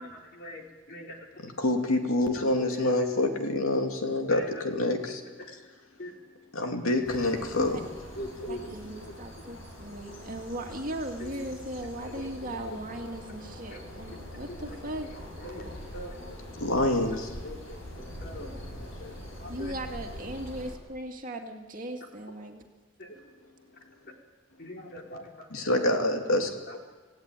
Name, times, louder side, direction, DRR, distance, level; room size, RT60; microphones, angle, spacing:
voice 1, 0.0-1.3 2.3-3.1 4.3-4.6 6.0-6.1 6.6-7.7 8.2-9.5 11.2-11.5 12.0-12.8 13.7-13.9 14.5-14.8 15.4-16.5 17.1-17.8 18.2-19.7 23.0-23.2 24.6-25.5 26.7-26.9, left 1 dB, 45° left, 4.3 m, -43 dB
voice 2, 1.4-5.2 6.5-7.8 16.6-17.3 25.5-26.6, left 2 dB, 80° left, 2.7 m, -26 dB
sound 1, 7.0-20.8, equal, 65° left, 6.7 m, -43 dB
voice 3, 8.5-15.1 19.5-22.6, right 1 dB, 40° right, 2.3 m, -38 dB
27.0 x 17.0 x 9.1 m
head